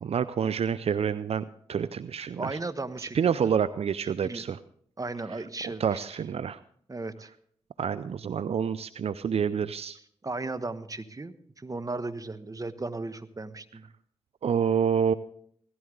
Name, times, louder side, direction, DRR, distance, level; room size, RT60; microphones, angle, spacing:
voice 1, 0.0-2.6 3.0-4.6 5.8-6.6 7.8-10.0 14.4-15.1, right 7 dB, 70° right, 15 dB, 0.5 m, -28 dB
voice 2, 2.3-3.8 4.2-4.4 5.0-6.0 6.9-7.3 10.2-13.9, right 3 dB, 35° right, 11 dB, 1.2 m, -36 dB
17.0 x 14.5 x 3.8 m, 0.63 s
cardioid pair, 45°, 11 cm